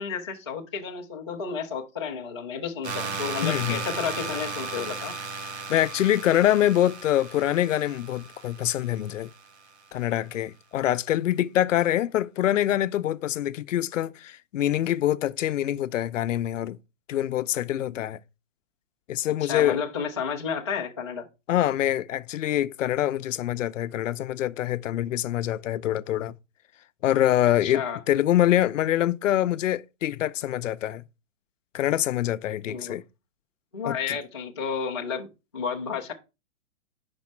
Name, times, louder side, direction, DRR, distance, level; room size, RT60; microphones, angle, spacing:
voice 1, 0.0-5.2 19.4-21.3 27.6-28.0 32.7-33.0 33.7-35.3 35.5-36.1, left 6 dB, 25° left, 0.4 m, -31 dB
sound 1, 2.8-9.7, right 4 dB, 60° right, 1.3 m, -35 dB
voice 2, 3.4-3.8 5.7-9.3 9.9-16.8 17.1-18.2 19.1-19.8 21.5-26.3 27.0-31.0 31.7-33.0 33.8-34.2, left 12 dB, 75° left, 0.6 m, -25 dB
5.3 x 4.1 x 5.8 m
hypercardioid pair, 180°, 38 cm